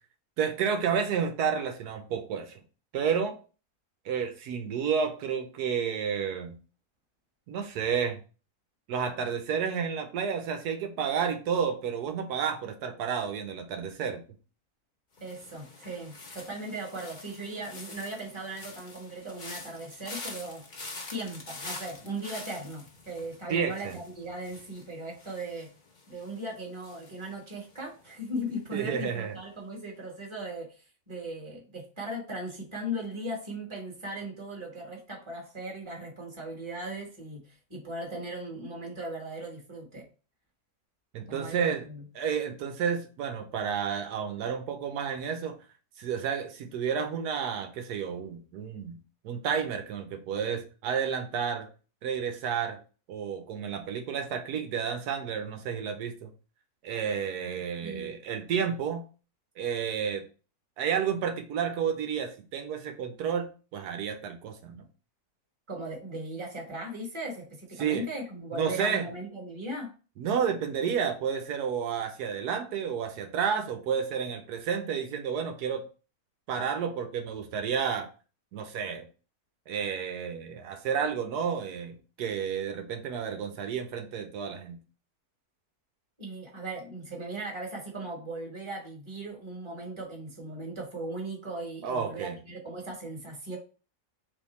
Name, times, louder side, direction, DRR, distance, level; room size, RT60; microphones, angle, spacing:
voice 1, 0.4-2.5 2.9-3.4 4.0-6.6 7.5-8.2 8.9-14.2 23.5-24.0 28.7-29.3 41.1-41.9 42.1-45.6 46.0-49.0 49.2-51.7 52.0-52.8 53.1-56.3 56.8-59.0 59.6-60.2 60.8-64.8 67.8-68.0 68.5-69.1 70.2-75.8 76.5-78.1 78.5-79.1 79.7-84.8 91.8-92.4, right 7 dB, 85° right, 6 dB, 1.2 m, -31 dB
sound 1, 15.2-28.2 28.5-28.9, left 3 dB, 40° left, 0.9 m, -46 dB
voice 2, 15.2-20.6 21.1-25.7 26.1-40.0 41.3-42.0 57.5-58.2 65.7-69.9 86.2-93.6, right 1 dB, 20° right, 0 dB, 1.2 m, -38 dB
3.5 x 3.1 x 4.1 m, 0.36 s
omnidirectional pair, 1.6 m